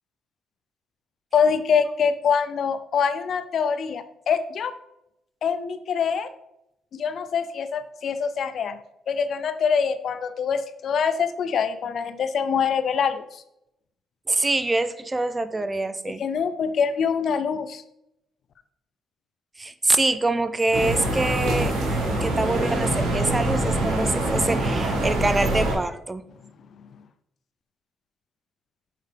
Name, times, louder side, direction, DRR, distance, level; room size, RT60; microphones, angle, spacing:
voice 1, 1.3-4.7 5.4-6.3 6.9-8.8 9.1-13.4 16.2-17.8, left 6 dB, 60° left, 11 dB, 0.5 m, -24 dB
voice 2, 14.3-16.2 19.6-21.7 22.2-26.2, right 2 dB, 20° right, 11 dB, 0.4 m, -25 dB
sound 1, 20.7-25.7, right 1 dB, 90° right, 1.7 m, -24 dB
6.7 x 4.6 x 3.4 m, 0.83 s
cardioid pair, 90°, 0 cm